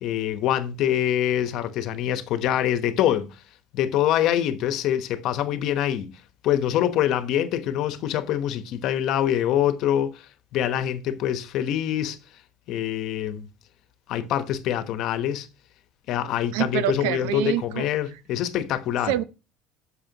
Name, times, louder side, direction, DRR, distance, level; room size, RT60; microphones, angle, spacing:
voice 1, 0.0-3.4 3.7-10.3 10.5-12.2 12.7-13.5 14.1-15.5 16.1-19.1, left 11 dB, 65° left, 1.0 m, -25 dB
voice 2, 16.5-17.8 19.1-19.2, right 14 dB, 85° right, 0.7 m, -26 dB
8.9 x 6.7 x 2.9 m
supercardioid pair, 100°, 0 cm